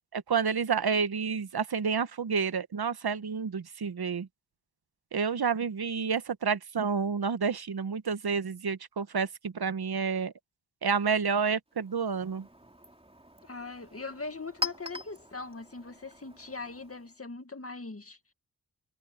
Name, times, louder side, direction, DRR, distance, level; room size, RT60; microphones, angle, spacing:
voice 1, 0.1-4.3 5.1-10.3 10.8-12.5, right 6 dB, 70° right, 1.1 m, -29 dB
Chink clink, 11.7-17.2, left 3 dB, 15° right, 2.8 m, -42 dB
voice 2, 13.4-18.2, left 3 dB, 35° left, 1.9 m, -41 dB
wide cardioid pair, 75°, 39 cm